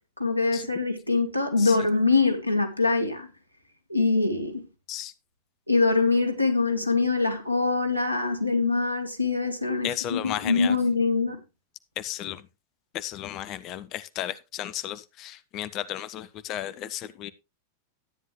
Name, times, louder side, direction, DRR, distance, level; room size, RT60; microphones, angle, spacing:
voice 1, 0.2-3.3 3.9-4.6 5.7-11.4, left 3 dB, 90° right, 1.8 m, -24 dB
voice 2, 9.8-10.8 12.0-12.5 12.9-17.3, left 12 dB, 35° left, 0.8 m, -34 dB
12.5 x 9.3 x 3.2 m
figure-of-eight pair, 90°, 0 cm